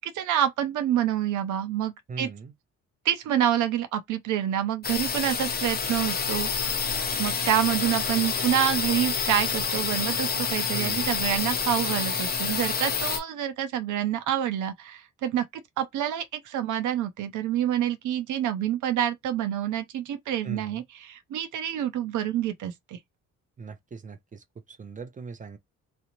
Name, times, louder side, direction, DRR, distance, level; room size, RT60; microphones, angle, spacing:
voice 1, 0.0-2.3 3.0-6.5 7.2-15.4 15.8-23.0, right 11 dB, 75° right, 0.6 m, -27 dB
voice 2, 2.1-2.5 10.7-11.2 20.4-20.8 23.6-25.6, right 4 dB, 25° right, 0.5 m, -39 dB
sound 1, 4.8-13.2, left 6 dB, 30° left, 0.6 m, -28 dB
2.5 x 2.0 x 2.9 m
cardioid pair, 90°, 30 cm